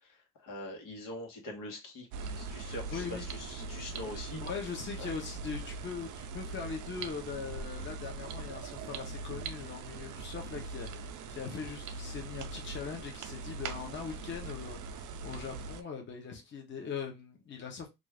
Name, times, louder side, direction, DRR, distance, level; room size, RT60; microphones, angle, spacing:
voice 1, 0.0-4.4 5.0-5.1, left 1 dB, 85° left, 1.2 m, -43 dB
sound 1, 2.1-15.8, right 4 dB, 65° right, 0.5 m, -41 dB
voice 2, 2.9-3.3 4.4-17.9, left 6 dB, 35° left, 0.7 m, -41 dB
2.5 x 2.4 x 3.3 m
cardioid pair, 155°, 32 cm